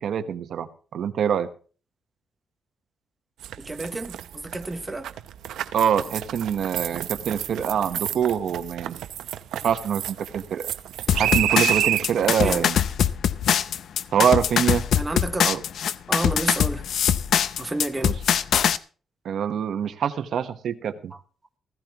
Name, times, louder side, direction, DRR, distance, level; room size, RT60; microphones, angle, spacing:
voice 1, 0.0-1.5 5.7-9.0 9.6-10.7 11.2-12.8 14.1-14.8 15.4-15.6 18.0-18.2 19.2-21.1, right 8 dB, 65° right, 1.1 m, -25 dB
sound 1, 3.4-12.6, right 11 dB, 90° right, 0.7 m, -29 dB
voice 2, 3.6-5.1 12.4-12.6 14.9-15.5 16.1-16.8 17.6-18.1, right 2 dB, 15° right, 1.0 m, -30 dB
sound 2, 11.1-18.8, left 9 dB, 70° left, 0.6 m, -22 dB
15.5 x 15.5 x 3.0 m
cardioid pair, 120°, 0 cm